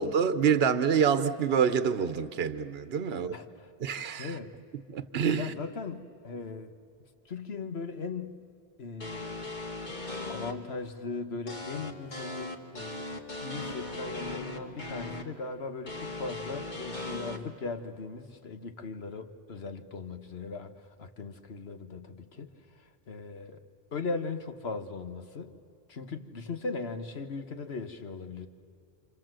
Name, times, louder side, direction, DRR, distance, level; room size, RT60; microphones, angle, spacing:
voice 1, 0.0-3.3 3.8-4.4 4.9-5.5, right 7 dB, 70° right, 1.1 m, -27 dB
voice 2, 4.2-4.5 5.3-6.7 7.3-8.4 8.8-9.4 10.3-20.7 21.0-22.5 23.1-23.6 23.9-25.5 25.9-28.5, left 4 dB, 75° left, 1.6 m, -38 dB
sound 1, 9.0-10.5 11.5-15.2 15.9-17.4, left 2 dB, 45° left, 2.2 m, -38 dB
28.5 x 27.0 x 7.7 m
omnidirectional pair, 1.1 m